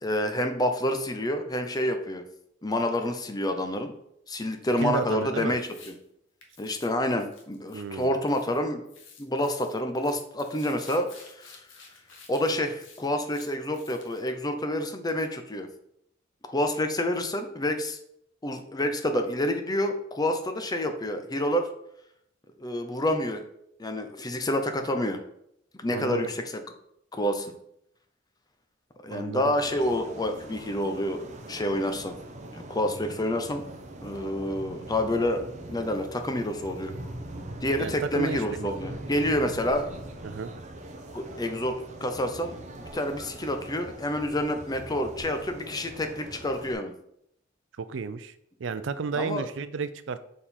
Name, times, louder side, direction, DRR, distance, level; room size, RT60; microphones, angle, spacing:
voice 1, 0.0-2.2 2.6-3.9 4.3-5.9 6.6-8.9 9.2-11.6 12.3-15.7 16.5-18.0 18.4-21.7 22.6-23.4 23.8-25.2 25.8-26.6 27.1-27.5 29.0-31.2 31.5-32.1 32.5-33.6 34.0-35.4 35.7-36.9 37.6-39.9 41.1-46.9 49.2-49.5, left 1 dB, 20° left, 7 dB, 0.6 m, -28 dB
voice 2, 4.8-5.6 7.7-8.1 25.9-26.3 29.1-29.5 37.8-38.7 40.2-40.5 47.8-48.3 48.6-50.2, right 5 dB, 70° right, 12 dB, 0.4 m, -32 dB
sound 1, 5.5-5.9 6.4-8.6 8.9-14.3, left 5 dB, 90° left, 1.4 m, -52 dB
sound 2, 29.6-46.7, right 1 dB, 40° right, 0.8 m, -42 dB
6.7 x 3.7 x 4.2 m, 0.73 s
head